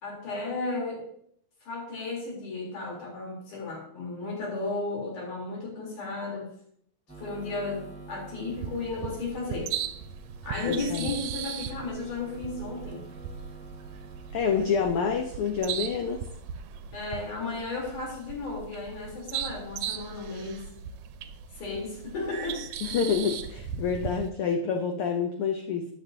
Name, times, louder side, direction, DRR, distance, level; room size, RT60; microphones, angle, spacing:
voice 1, 0.0-1.1 1.6-6.5 7.2-9.7 10.4-13.1 16.9-20.7 21.6-22.7, left 3 dB, 85° left, -3 dB, 5.2 m, -34 dB
sound 1, 7.1-15.3, right 3 dB, ahead, 4.3 m, -48 dB
sound 2, 8.5-24.3, right 8 dB, 75° right, 1.8 m, -38 dB
voice 2, 10.6-11.1 14.3-16.2 22.8-25.9, left 6 dB, 65° left, 3 dB, 1.4 m, -28 dB
13.5 x 9.5 x 2.8 m, 0.67 s
omnidirectional pair, 3.5 m